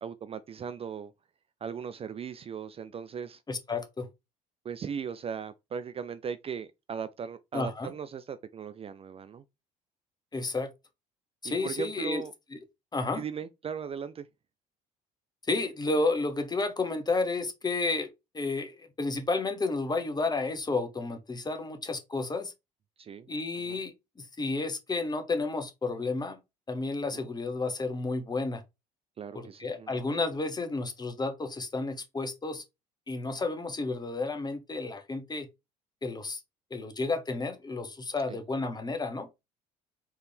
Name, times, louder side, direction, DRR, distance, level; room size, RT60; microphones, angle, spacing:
voice 1, 0.0-1.1 1.6-3.4 4.6-9.4 11.4-12.3 13.2-14.3 23.0-23.3 23.7-23.8 27.1-27.3 29.2-30.0 38.3-38.4, right 7 dB, 35° right, 0.4 m, -38 dB
voice 2, 3.5-4.1 7.5-7.9 10.3-10.7 11.4-12.2 12.9-13.2 15.5-18.1 18.3-22.5 23.3-23.9 24.2-26.4 26.7-28.6 29.3-32.6 33.1-35.5 36.0-36.4 36.7-39.3, left 3 dB, 25° left, 1.1 m, -31 dB
4.5 x 3.3 x 3.6 m
hypercardioid pair, 65°, 18 cm